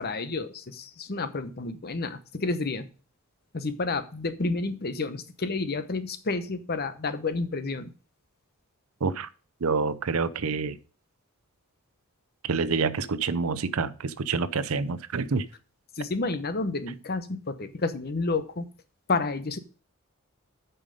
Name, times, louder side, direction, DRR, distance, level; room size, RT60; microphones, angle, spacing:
voice 1, 0.0-2.9 3.5-7.9 16.0-18.7 19.1-19.6, left 3 dB, 45° left, 12 dB, 0.9 m, -30 dB
voice 2, 9.6-10.8 12.4-15.5, right 4 dB, 70° right, 16 dB, 0.6 m, -27 dB
8.7 x 5.6 x 5.1 m, 0.36 s
head